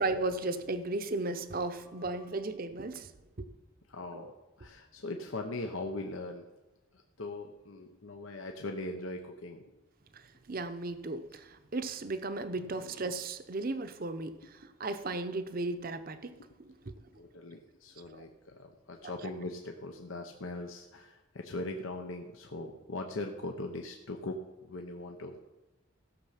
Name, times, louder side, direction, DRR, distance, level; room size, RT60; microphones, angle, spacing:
voice 1, 0.0-3.1 3.4-3.5 4.1-4.3 10.1-17.0 18.1-18.2 19.0-19.1, right 2 dB, 45° right, 10 dB, 0.7 m, -35 dB
voice 2, 3.9-4.3 4.6-6.4 6.9-9.6 17.2-25.5, left 2 dB, 75° left, 4 dB, 0.8 m, -40 dB
15.5 x 6.6 x 5.8 m, 1.1 s
head